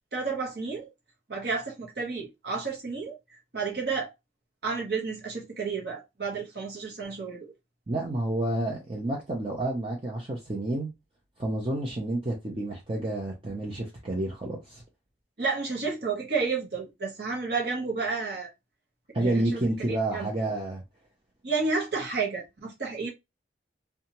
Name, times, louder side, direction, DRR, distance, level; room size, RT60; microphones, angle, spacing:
voice 1, 0.1-0.9 1.3-3.2 3.5-4.1 4.6-7.5 15.4-18.5 19.2-19.6 19.9-20.3 21.4-23.1, right 4 dB, 55° right, 0.8 m, -31 dB
voice 2, 7.9-10.9 11.4-14.8 19.1-20.8, right 1 dB, 30° right, 0.6 m, -29 dB
2.7 x 2.3 x 2.8 m
head